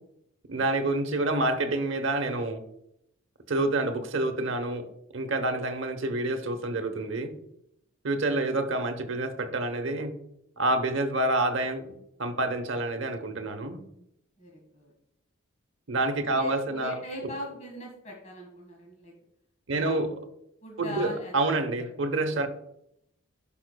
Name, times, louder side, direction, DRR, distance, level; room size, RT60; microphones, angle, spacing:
voice 1, 0.5-2.6 3.5-4.9 5.1-7.3 8.0-10.1 10.6-11.8 12.2-13.8 15.9-17.0 19.7-20.1 20.8-22.5, right 2 dB, 60° right, 8 dB, 0.9 m, -28 dB
voice 2, 14.4-14.9 16.2-19.1 19.7-20.1 20.6-21.6, equal, 35° left, -1 dB, 1.5 m, -40 dB
11.0 x 5.7 x 2.2 m, 0.78 s
head